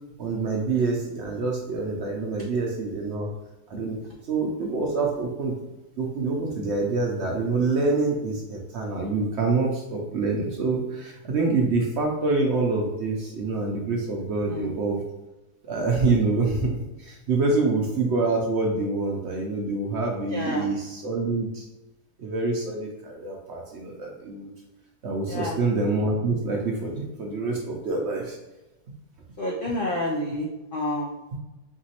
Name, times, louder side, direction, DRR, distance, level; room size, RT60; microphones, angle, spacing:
voice 1, 0.2-3.3 3.7-4.0 4.3-5.5 6.0-15.0 15.6-16.7 17.0-21.6 22.2-24.5 25.0-28.4 31.3-31.4, right 3 dB, 65° right, 0 dB, 0.7 m, -26 dB
voice 2, 20.3-20.7 25.3-25.6 29.4-31.1, left 1 dB, 85° left, -2 dB, 0.4 m, -29 dB
4.6 x 2.9 x 2.9 m, 1.0 s
omnidirectional pair, 1.6 m